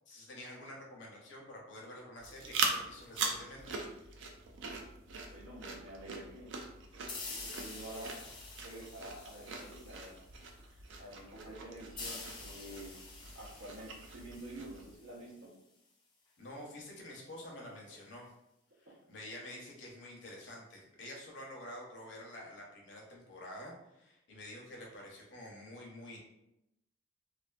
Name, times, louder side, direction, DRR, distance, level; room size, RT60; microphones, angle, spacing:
voice 1, 0.1-4.3 16.4-18.3 18.8-26.2, left 1 dB, 60° left, -2 dB, 0.6 m, -49 dB
sound 1, 2.2-14.9, right 4 dB, 65° right, 0.3 m, -42 dB
voice 2, 5.2-6.6 7.3-8.1 8.6-10.2 10.6-13.0 13.3-15.5 18.9-19.0, right 1 dB, 85° right, -3 dB, 0.7 m, -48 dB
sound 2, 7.1-10.5 12.0-15.5, left 3 dB, 20° left, 0.3 m, -48 dB
2.5 x 2.4 x 2.3 m, 0.86 s
head